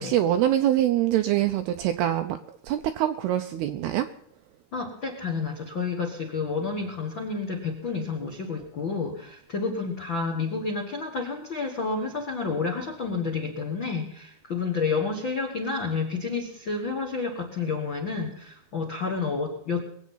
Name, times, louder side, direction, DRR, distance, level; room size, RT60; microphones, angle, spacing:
voice 1, 0.0-4.1, right 12 dB, 80° right, 8 dB, 2.3 m, -24 dB
voice 2, 4.7-19.8, left 4 dB, 75° left, 3 dB, 1.1 m, -30 dB
22.5 x 8.5 x 5.5 m, 0.71 s
omnidirectional pair, 5.4 m